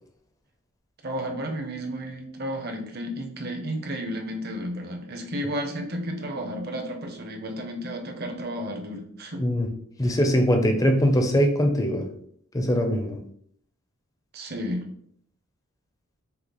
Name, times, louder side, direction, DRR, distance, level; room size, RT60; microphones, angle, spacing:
voice 1, 1.0-9.4 14.3-14.9, equal, 45° right, 3 dB, 0.7 m, -32 dB
voice 2, 9.4-9.7 10.0-12.1 12.5-13.2, equal, 15° left, 4 dB, 0.5 m, -22 dB
5.6 x 2.0 x 4.0 m, 0.65 s
head